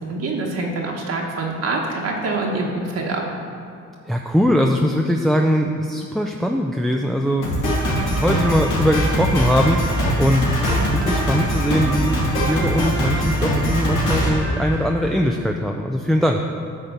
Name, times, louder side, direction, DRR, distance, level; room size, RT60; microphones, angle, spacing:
voice 1, 0.0-3.3, right 2 dB, 55° right, -1 dB, 1.2 m, -25 dB
voice 2, 4.0-7.8 8.2-16.4, equal, ahead, 2 dB, 0.4 m, -21 dB
Drum kit, 7.4-15.2, equal, 85° left, 2.3 m, -21 dB
10.0 x 3.7 x 6.7 m, 2.3 s
cardioid pair, 90°, 30 cm